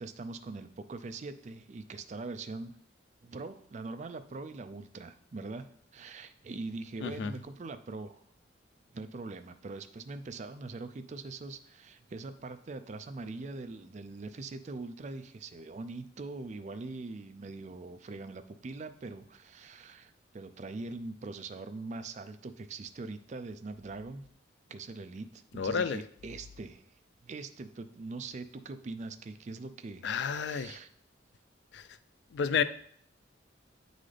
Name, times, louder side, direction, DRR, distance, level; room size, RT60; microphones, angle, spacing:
voice 1, 0.0-2.7 3.2-5.7 5.9-8.2 8.9-24.2 24.7-26.9 27.2-30.1 30.4-30.9, right 3 dB, 35° right, 10 dB, 0.4 m, -42 dB
voice 2, 25.5-26.0 30.0-30.8 31.7-31.8 32.3-32.6, left 6 dB, 60° left, 13 dB, 0.3 m, -30 dB
8.5 x 3.9 x 3.3 m, 0.64 s
head